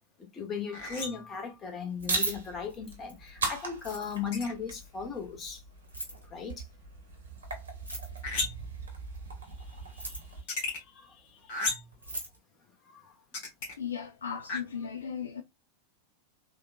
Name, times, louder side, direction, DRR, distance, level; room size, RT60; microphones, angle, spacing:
voice 1, 0.3-5.6 6.3-6.6 9.7-11.7 12.9-13.1, left 6 dB, 25° left, 0.9 m, -38 dB
sound 1, 0.7-1.3 4.3-4.5 8.2-8.8 10.3-10.8 11.5-12.0 13.3-13.7 14.5-14.6, left 3 dB, 50° left, 1.5 m, -34 dB
Keys jangling, 1.9-3.3 3.7-4.4 5.8-6.3 7.7-8.4 9.8-10.4 11.6-11.7 11.9-12.4, right 2 dB, 85° right, 1.2 m, -39 dB
sound 2, 2.0-10.4, right 3 dB, 65° right, 1.0 m, -39 dB
voice 2, 13.8-15.4, left 7 dB, 70° left, 0.3 m, -36 dB
3.5 x 2.3 x 2.4 m
figure-of-eight pair, 90°, 0 cm